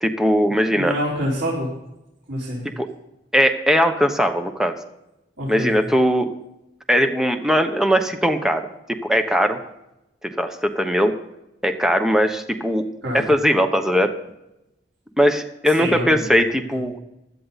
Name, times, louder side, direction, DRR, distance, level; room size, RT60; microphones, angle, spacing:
voice 1, 0.0-0.9 2.8-2.9 3.3-4.7 5.5-6.3 6.9-9.6 10.2-11.2 11.6-12.9 13.1-14.1 15.2-17.0, equal, 5° right, 6 dB, 0.9 m, -19 dB
voice 2, 0.7-1.7 2.3-2.6 5.4-5.7 13.0-13.3 15.7-16.3, equal, 90° right, -7 dB, 4.8 m, -26 dB
16.0 x 12.5 x 4.1 m, 0.90 s
head